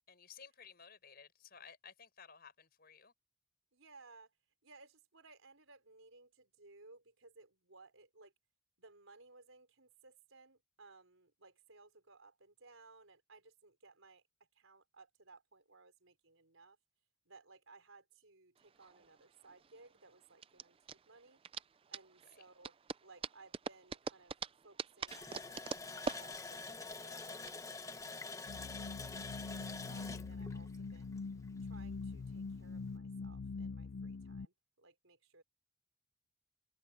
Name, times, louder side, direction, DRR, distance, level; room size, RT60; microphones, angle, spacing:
voice 1, 0.1-3.1 22.3-22.4, left 6 dB, 45° left, 6.2 m, -57 dB
voice 2, 3.7-4.3 4.6-8.3 8.8-14.2 14.5-16.8 17.2-21.4 21.9-22.7 23.0-31.1 31.6-35.4, right 3 dB, 75° right, 4.5 m, -61 dB
sound 1, 18.6-27.5, right 5 dB, 25° right, 0.4 m, -45 dB
Water tap faucet, 25.1-31.6 31.9-32.0 32.5-32.6, left 3 dB, 15° left, 0.9 m, -46 dB
sound 2, 28.5-34.5, left 4 dB, 65° left, 0.4 m, -44 dB
head